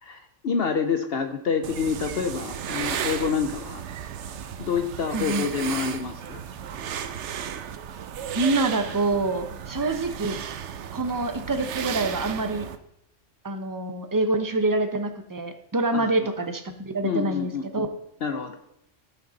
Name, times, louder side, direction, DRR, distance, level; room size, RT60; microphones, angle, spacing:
voice 1, 0.0-3.8 4.6-6.4 15.9-16.3 17.0-17.9 18.2-18.6, left 6 dB, 60° left, 7 dB, 0.9 m, -28 dB
sound 1, 1.6-12.8, right 8 dB, 70° right, 1.0 m, -34 dB
voice 2, 5.1-5.5 8.3-10.4 10.9-12.7 13.4-17.9, right 2 dB, 20° right, 7 dB, 0.7 m, -26 dB
14.5 x 5.9 x 4.0 m, 0.77 s
omnidirectional pair, 1.3 m